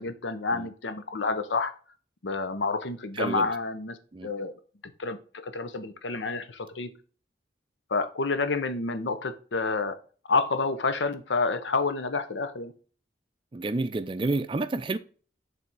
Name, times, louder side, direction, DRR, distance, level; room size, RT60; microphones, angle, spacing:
voice 1, 0.0-1.7 2.2-4.0 4.2-4.6 5.0-5.2 5.4-6.9 7.9-9.9 10.3-12.7, left 3 dB, 90° left, 0.8 m, -29 dB
voice 2, 3.2-3.5 4.1-4.3 13.5-15.0, right 2 dB, 30° right, 0.4 m, -29 dB
7.5 x 3.4 x 4.0 m
head